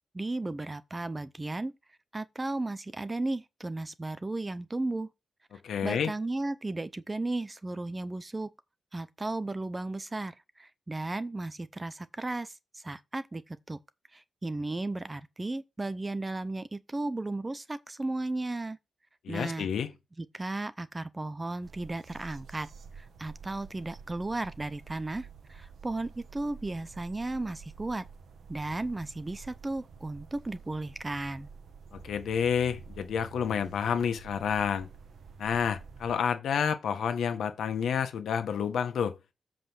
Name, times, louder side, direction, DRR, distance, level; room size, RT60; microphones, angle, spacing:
voice 1, 0.1-1.7 2.1-5.1 5.8-8.5 8.9-13.8 14.1-18.8 19.3-19.7 20.2-22.7 23.0-28.0 28.5-31.5, right 2 dB, 15° right, 0.6 m, -35 dB
voice 2, 5.6-6.1 19.2-19.9 31.9-34.9 35.4-39.2, left 7 dB, 80° left, 1.5 m, -29 dB
sound 1, 21.6-36.2, right 5 dB, 60° right, 1.8 m, -49 dB
7.8 x 5.1 x 6.4 m
wide cardioid pair, 165°, 0 cm